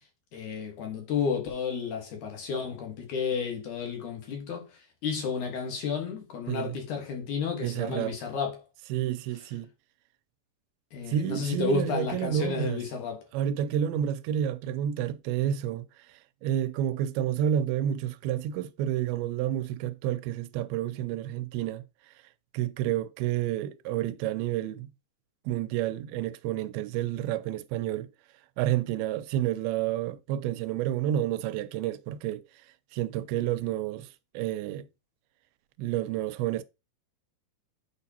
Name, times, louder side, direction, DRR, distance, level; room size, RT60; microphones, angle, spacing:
voice 1, 0.3-8.6 10.9-13.3, left 5 dB, 60° left, 2.5 m, -32 dB
voice 2, 7.6-8.2 8.9-9.7 11.1-12.8 13.3-21.8 22.5-24.9 25.5-28.1 28.6-32.4 32.9-34.9 35.8-36.6, right 11 dB, 90° right, 2.5 m, -30 dB
8.5 x 4.7 x 2.8 m
omnidirectional pair, 4.3 m